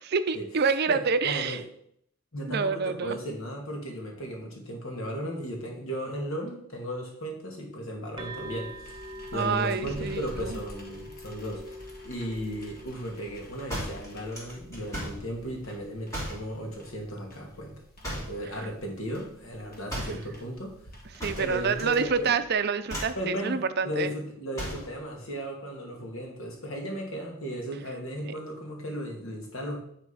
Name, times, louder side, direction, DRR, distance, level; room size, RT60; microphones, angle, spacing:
voice 1, 0.0-1.6 2.5-3.2 9.3-10.6 20.0-20.1 21.2-24.1 28.2-28.3, right 5 dB, 50° right, 11 dB, 0.5 m, -27 dB
voice 2, 0.9-1.6 2.3-8.9 9.3-17.8 18.1-20.7 21.4-22.3 23.1-29.8, equal, 70° left, 1 dB, 2.3 m, -35 dB
sound 1, 8.2-15.7, equal, 20° right, 1.0 m, -44 dB
sound 2, 8.4-22.1, equal, 45° left, 1.7 m, -49 dB
sound 3, 13.7-15.3 16.1-16.5 18.0-18.5 19.9-20.3 21.2-22.0 22.2-22.5 22.9-23.2 24.5-24.9, equal, 15° left, 2.8 m, -36 dB
10.0 x 4.2 x 5.5 m, 0.68 s
head